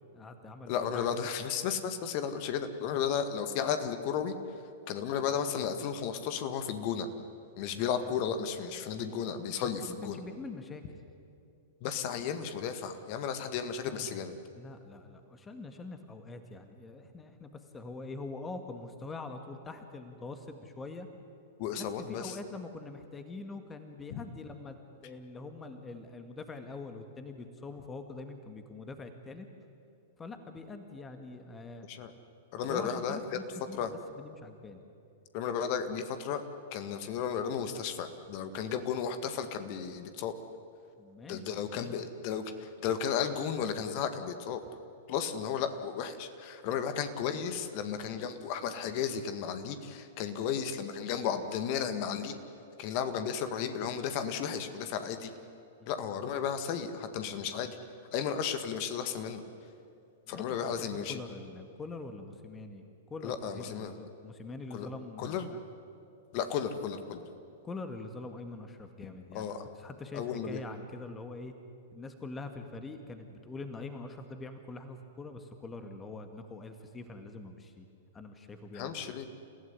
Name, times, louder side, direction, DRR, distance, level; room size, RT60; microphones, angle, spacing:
voice 1, 0.1-1.1 9.9-10.8 13.9-14.2 14.6-21.1 21.8-24.8 25.0-29.5 30.2-31.9 32.7-34.8 41.0-41.5 41.8-42.0 55.8-55.9 60.3-62.8 63.1-65.6 67.6-71.5 71.9-77.9 78.1-79.1, left 3 dB, 15° left, 7 dB, 1.9 m, -44 dB
voice 2, 0.7-4.4 4.9-7.1 7.6-10.2 11.8-14.3 21.6-22.4 24.1-24.2 31.9-32.1 32.5-33.2 33.7-33.9 35.3-36.4 36.7-40.3 41.3-44.6 45.1-52.4 52.8-55.3 55.9-57.8 58.1-59.4 60.3-61.2 63.2-63.9 64.7-64.9 65.2-65.5 66.3-67.2 69.3-69.6 70.1-70.6 78.7-79.3, left 7 dB, 45° left, 9 dB, 1.8 m, -34 dB
29.5 x 16.0 x 9.7 m, 2.6 s
figure-of-eight pair, 105°, 0 cm